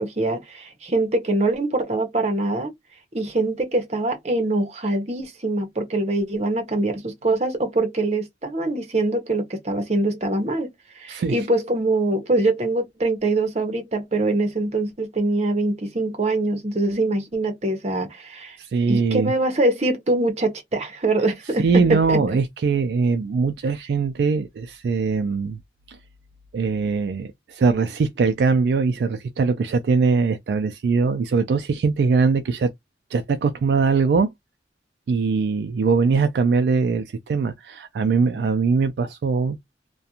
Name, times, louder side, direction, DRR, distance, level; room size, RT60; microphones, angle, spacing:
voice 1, 0.0-2.7 3.1-10.7 11.0-18.6 18.9-21.6 21.9-22.2, right 2 dB, 35° right, 0.7 m, -23 dB
voice 2, 11.1-11.4 18.6-19.3 21.6-25.6 25.9-26.0 26.5-32.7 33.1-34.3 35.1-39.6, right 4 dB, 65° right, 0.3 m, -21 dB
2.4 x 2.2 x 2.8 m
head